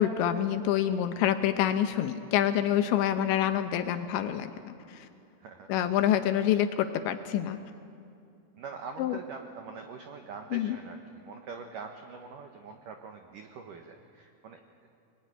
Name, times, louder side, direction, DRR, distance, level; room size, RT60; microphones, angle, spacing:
voice 1, 0.0-5.1 5.7-7.6 9.0-9.2 10.5-10.8, left 10 dB, 75° left, 9 dB, 2.9 m, -27 dB
voice 2, 5.4-5.7 8.6-14.9, right 5 dB, 90° right, 4 dB, 1.8 m, -44 dB
25.0 x 21.0 x 9.9 m, 2.5 s
omnidirectional pair, 5.8 m